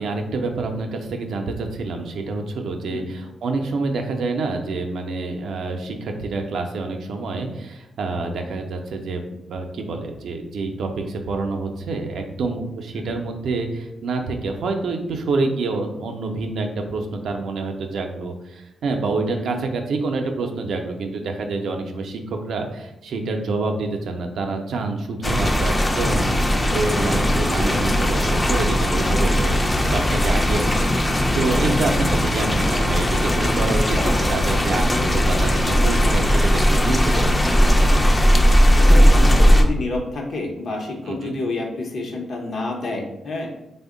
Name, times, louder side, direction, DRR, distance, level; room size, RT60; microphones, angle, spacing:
voice 1, 0.0-26.3 26.6-37.4 41.1-41.3, right 3 dB, 80° right, 4 dB, 0.4 m, -27 dB
sound 1, 25.2-39.6, equal, 20° left, 0.4 m, -18 dB
voice 2, 38.7-43.5, left 2 dB, 65° left, 1 dB, 0.7 m, -29 dB
3.4 x 2.1 x 3.7 m, 0.89 s
cardioid pair, 60°, 0 cm